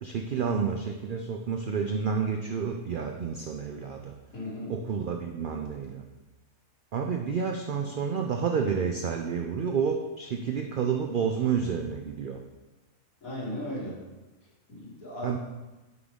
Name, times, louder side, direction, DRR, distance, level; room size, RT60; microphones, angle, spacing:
voice 1, 0.0-4.2 4.7-6.1 6.9-12.4 15.2-15.4, right 6 dB, 75° right, 3 dB, 0.4 m, -30 dB
voice 2, 4.3-4.7 13.2-14.0 14.7-15.4, left 1 dB, 85° left, -8 dB, 2.7 m, -36 dB
9.5 x 3.7 x 3.4 m, 1.1 s
omnidirectional pair, 1.4 m